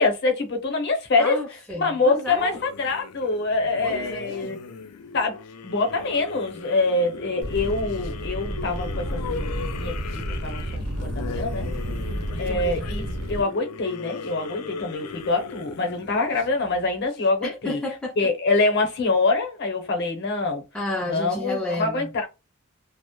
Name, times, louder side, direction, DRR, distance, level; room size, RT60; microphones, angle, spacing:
voice 1, 0.0-1.4 1.7-4.6 5.1-11.7 12.4-17.8 18.2-20.6 21.1-22.3, left 3 dB, 50° left, 0.7 m, -25 dB
voice 2, 1.2-2.6 3.8-4.6 12.1-12.8 17.4-18.1 20.7-22.1, left 1 dB, 5° left, 0.3 m, -32 dB
sound 1, 2.3-17.2, left 5 dB, 85° left, 0.4 m, -38 dB
sound 2, 7.4-13.4, right 1 dB, 90° right, 0.8 m, -31 dB
2.1 x 2.0 x 2.9 m
head